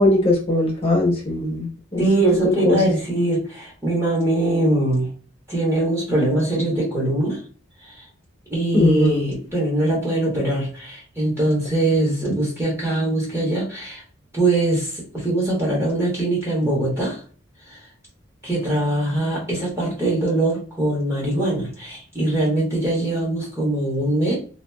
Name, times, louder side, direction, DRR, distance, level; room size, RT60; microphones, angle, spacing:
voice 1, 0.0-1.7 1.9-2.0 2.6-2.8 8.7-9.2, left 1 dB, 30° left, -2 dB, 0.8 m, -19 dB
voice 2, 2.0-5.1 5.5-7.4 7.8-8.0 8.5-14.0 14.3-17.2 17.7-17.8 18.4-24.4, right 1 dB, 15° right, -5 dB, 1.0 m, -22 dB
2.9 x 2.5 x 2.2 m, 0.39 s
head